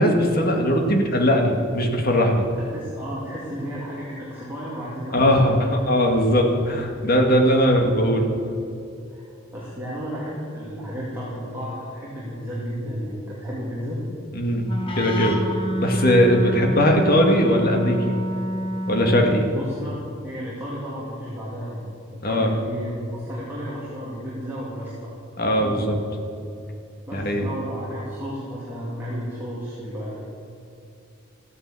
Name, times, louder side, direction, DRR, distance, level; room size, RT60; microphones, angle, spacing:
voice 1, 0.0-2.4 5.1-5.6 5.9-8.3 14.3-14.7 14.9-15.4 15.8-18.1 18.9-19.4 22.2-22.5 25.4-26.0 27.1-27.5, equal, 45° left, 2 dB, 1.8 m, -19 dB
voice 2, 2.7-5.8 9.1-9.2 9.5-14.0 19.5-19.9 20.2-25.1 25.4-25.9 27.1-30.2, equal, 10° right, -8 dB, 2.6 m, -33 dB
Wind instrument woodwind instrument, 14.6-19.5, equal, 25° left, 1.5 m, -28 dB
14.5 x 9.6 x 7.6 m, 2.7 s
head